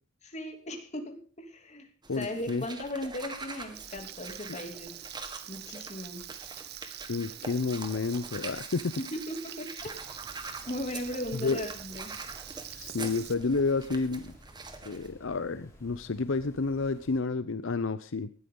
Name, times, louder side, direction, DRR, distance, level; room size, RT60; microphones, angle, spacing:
voice 1, 0.2-1.9 2.2-4.9 5.5-6.2 9.0-10.2 10.7-12.1, left 1 dB, 35° left, 4 dB, 2.9 m, -37 dB
sound 1, 2.0-15.1, right 3 dB, 20° right, 1.8 m, -44 dB
voice 2, 2.1-2.6 7.1-8.9 11.3-11.6 12.7-14.3 14.8-18.3, left 4 dB, 80° left, 13 dB, 0.7 m, -30 dB
Frying (food), 3.7-13.3, right 13 dB, 55° right, 0.8 m, -45 dB
sound 2, 9.8-17.2, equal, 15° left, 5.3 m, -54 dB
19.0 x 13.0 x 3.9 m, 0.39 s
head